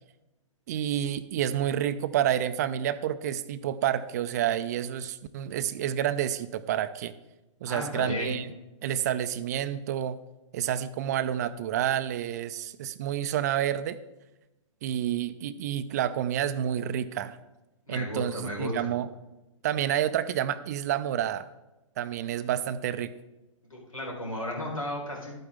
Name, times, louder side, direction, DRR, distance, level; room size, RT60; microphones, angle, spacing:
voice 1, 0.7-7.1 7.6-8.5 8.8-10.2 10.5-14.0 14.8-17.4 17.9-19.1 19.6-21.5 22.0-23.1, right 10 dB, 30° right, 14 dB, 0.4 m, -29 dB
voice 2, 7.7-8.4 17.9-18.9 23.7-25.3, left 1 dB, 85° left, -2 dB, 4.2 m, -34 dB
11.5 x 9.1 x 3.6 m, 1.0 s
figure-of-eight pair, 120°, 17 cm